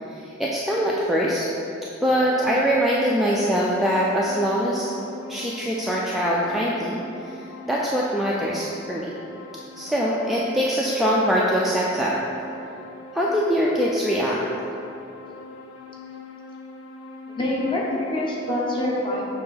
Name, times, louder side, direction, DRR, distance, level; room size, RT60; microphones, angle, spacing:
voice 1, 0.1-1.5 2.0-4.9 5.3-9.1 9.8-12.2 13.1-14.4, equal, ahead, -5 dB, 0.3 m, -23 dB
sound 1, 2.3-18.6, left 3 dB, 70° left, 0.5 m, -42 dB
voice 2, 17.3-19.2, left 1 dB, 25° left, -4 dB, 0.9 m, -25 dB
6.7 x 2.8 x 5.7 m, 2.8 s
head